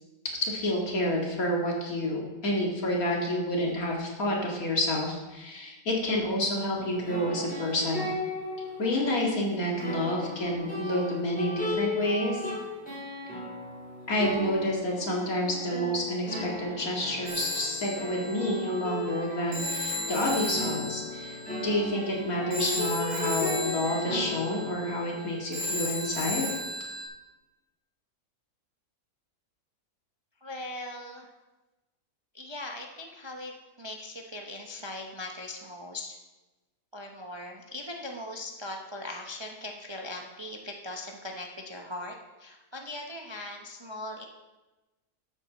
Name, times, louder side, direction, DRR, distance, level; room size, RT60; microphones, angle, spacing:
voice 1, 0.4-8.1 8.8-12.4 14.1-26.5, left 1 dB, 65° left, -2 dB, 2.5 m, -29 dB
sound 1, 6.7-25.7, left 2 dB, 5° left, 3.5 m, -36 dB
Telephone, 17.3-27.0, left 1 dB, 70° right, 2.6 m, -35 dB
voice 2, 30.4-31.3 32.3-33.5 33.8-36.2 36.9-44.3, left 1 dB, 25° right, 1 dB, 0.6 m, -40 dB
12.0 x 8.2 x 4.0 m, 1.1 s
omnidirectional pair, 1.7 m